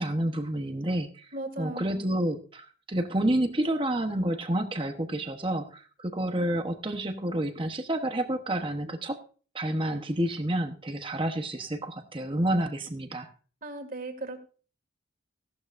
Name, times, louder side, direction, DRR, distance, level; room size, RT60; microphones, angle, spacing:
voice 1, 0.0-9.2 9.5-13.3, right 1 dB, 25° right, 6 dB, 1.0 m, -29 dB
voice 2, 1.3-2.1 13.6-14.4, right 2 dB, 45° right, 5 dB, 2.1 m, -37 dB
16.0 x 12.0 x 2.6 m, 0.39 s
head